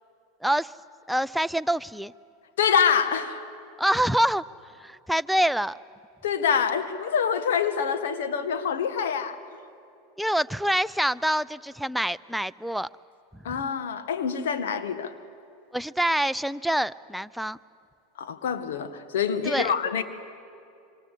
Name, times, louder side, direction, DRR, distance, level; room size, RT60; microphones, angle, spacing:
voice 1, 0.4-0.7 1.1-2.1 3.8-4.4 4.8-5.8 10.2-12.9 13.5-13.6 15.7-17.6 19.4-19.7, right 1 dB, ahead, 15 dB, 0.6 m, -26 dB
voice 2, 2.6-3.4 6.2-9.4 13.5-15.1 18.2-20.0, left 7 dB, 70° left, 9 dB, 1.7 m, -26 dB
25.5 x 25.5 x 8.5 m, 2.6 s
hypercardioid pair, 85°, 0 cm